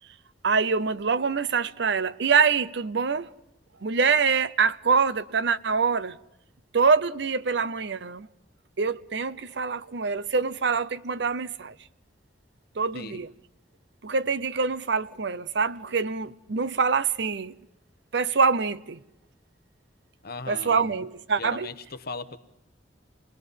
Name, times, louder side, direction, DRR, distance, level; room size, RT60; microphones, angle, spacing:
voice 1, 0.4-3.3 3.8-6.2 6.7-8.3 8.8-11.7 12.8-13.3 14.0-17.6 18.1-19.0 20.5-21.7, right 5 dB, 70° right, 0.7 m, -25 dB
voice 2, 12.9-13.3 20.2-21.0 21.4-22.4, left 3 dB, 60° left, 1.1 m, -38 dB
27.5 x 20.5 x 5.5 m
head